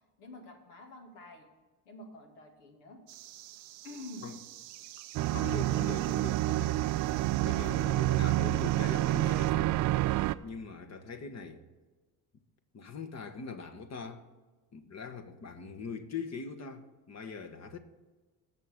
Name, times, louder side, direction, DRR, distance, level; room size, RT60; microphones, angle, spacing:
voice 1, 0.2-1.5 1.9-3.0 3.8-4.3, left 2 dB, 70° left, 2.3 m, -48 dB
sound 1, 3.1-9.5, right 13 dB, 85° right, 0.7 m, -49 dB
sound 2, 5.1-10.3, right 16 dB, 40° right, 0.5 m, -28 dB
voice 2, 5.3-6.8 7.4-9.9 10.4-11.6 12.7-14.3 14.7-17.8, left 5 dB, 35° left, 1.3 m, -42 dB
18.0 x 6.8 x 3.7 m
figure-of-eight pair, 60°, 48 cm